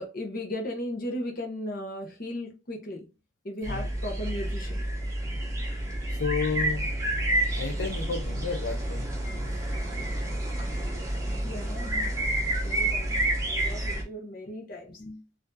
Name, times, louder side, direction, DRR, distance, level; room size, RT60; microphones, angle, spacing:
voice 1, 0.0-3.1 3.4-4.8 9.8-10.1 11.4-15.2, left 1 dB, 45° left, 0.9 m, -37 dB
sound 1, 3.6-14.0, right 1 dB, 15° right, 0.8 m, -29 dB
voice 2, 6.1-6.9 7.5-9.1, left 5 dB, 60° left, 0.5 m, -31 dB
4.3 x 2.6 x 2.6 m
head